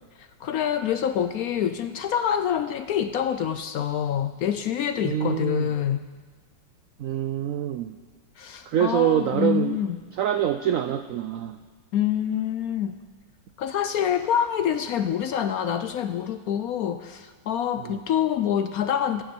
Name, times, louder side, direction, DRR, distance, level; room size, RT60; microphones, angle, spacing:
voice 1, 0.2-6.0 8.4-10.0 11.9-13.0 13.6-19.2, left 9 dB, 70° left, 9 dB, 0.9 m, -26 dB
voice 2, 5.0-5.7 7.0-8.0 8.7-9.8 10.2-11.6 17.8-18.0, right 10 dB, 80° right, 8 dB, 0.7 m, -25 dB
24.0 x 9.2 x 4.4 m, 1.4 s
omnidirectional pair, 2.0 m